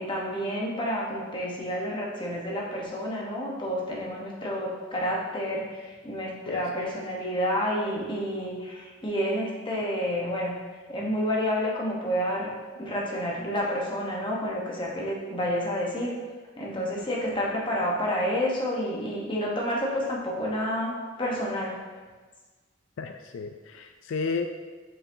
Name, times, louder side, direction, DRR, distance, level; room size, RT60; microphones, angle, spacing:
voice 1, 0.0-10.5 10.9-12.5 12.8-16.2 16.6-21.8, equal, 25° left, -3 dB, 1.0 m, -29 dB
voice 2, 23.0-24.5, left 4 dB, 75° left, 6 dB, 0.3 m, -32 dB
7.5 x 4.8 x 2.7 m, 1.4 s
head